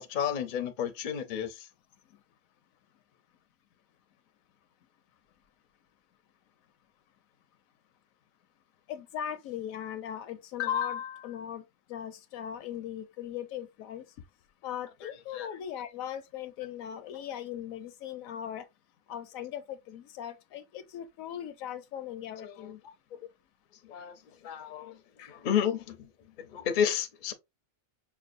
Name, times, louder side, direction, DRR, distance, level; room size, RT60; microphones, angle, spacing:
voice 1, 0.0-1.6 15.3-15.5 22.4-22.7 23.9-24.1 24.4-24.9 25.3-26.0 26.5-27.3, left 8 dB, 55° left, 0.5 m, -31 dB
voice 2, 8.9-11.6 11.9-14.0 14.6-18.6 19.1-22.8 25.2-25.4, left 10 dB, 75° left, 1.0 m, -38 dB
6.0 x 2.2 x 2.5 m
omnidirectional pair, 1.5 m